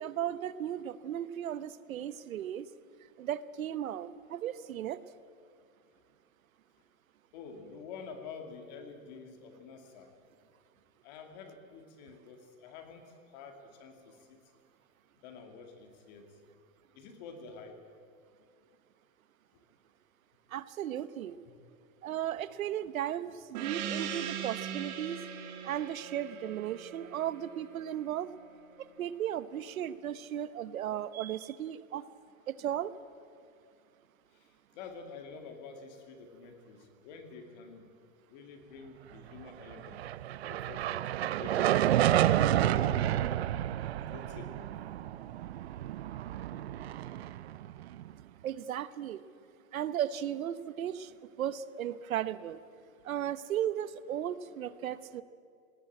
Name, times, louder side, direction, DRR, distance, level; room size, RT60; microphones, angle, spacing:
voice 1, 0.0-2.7 3.2-5.0 20.5-21.3 22.0-25.2 25.6-28.3 29.0-32.0 32.5-32.9 48.4-49.2 49.7-51.1 51.4-52.6 53.0-55.2, right 11 dB, 90° right, 15 dB, 1.1 m, -35 dB
voice 2, 7.3-10.1 11.0-13.0 13.3-14.4 15.2-16.3 16.9-17.8 21.5-21.6 34.7-37.9 38.3-40.0 40.4-43.3 44.0-44.7, left 5 dB, 30° left, 5 dB, 2.2 m, -48 dB
Gong, 23.5-28.5, right 8 dB, 30° right, 2.0 m, -40 dB
sound 1, 39.7-48.1, right 12 dB, 50° right, 0.5 m, -30 dB
19.5 x 17.5 x 9.0 m, 2.3 s
supercardioid pair, 175°, 40 cm